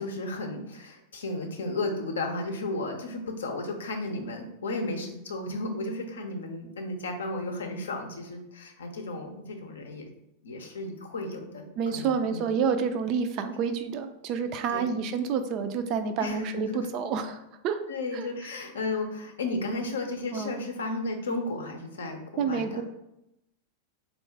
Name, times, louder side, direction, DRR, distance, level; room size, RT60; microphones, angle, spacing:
voice 1, 0.0-10.1 10.4-12.5 14.7-14.9 16.2-16.9 17.9-22.8, left 2 dB, 65° left, 3 dB, 0.6 m, -34 dB
voice 2, 11.8-17.8 18.1-18.3 20.3-20.6 22.4-22.8, right 6 dB, 40° right, 9 dB, 0.3 m, -29 dB
3.6 x 2.4 x 3.4 m, 0.84 s
figure-of-eight pair, 90°, 0 cm